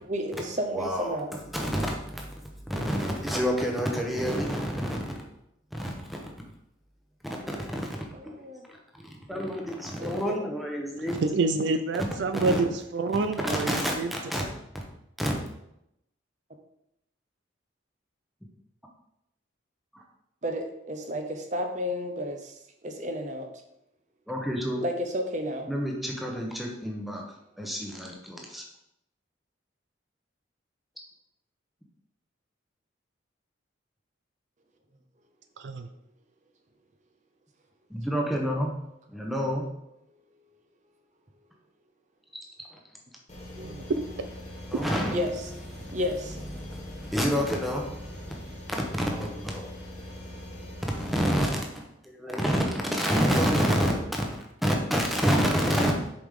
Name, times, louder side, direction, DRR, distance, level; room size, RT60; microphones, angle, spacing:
voice 1, 0.0-1.4 8.1-8.6 10.0-10.4 20.4-22.5 22.8-23.5 24.8-25.7 43.6-43.8 45.1-45.5 45.9-46.4, equal, 40° right, 5 dB, 0.7 m, -32 dB
voice 2, 0.7-1.2 1.5-2.3 2.5-5.1 5.7-6.3 7.5-7.9 8.2-8.4 9.0-11.2 12.3-12.6 13.4-14.4 15.2-15.3 24.3-24.8 25.7-27.2 27.6-28.6 37.9-38.7 39.1-39.7 44.7-45.2 45.7-46.0 46.6-48.0 48.7-49.7 50.9-51.6 52.2-54.3 54.6-56.1, equal, ahead, -1 dB, 0.9 m, -28 dB
voice 3, 11.0-14.1 35.6-35.9 43.6-44.3 44.7-44.8, right 3 dB, 65° right, 8 dB, 0.4 m, -28 dB
sound 1, 43.3-51.3, left 1 dB, 35° left, 1.5 m, -42 dB
6.9 x 5.0 x 3.7 m, 0.82 s
head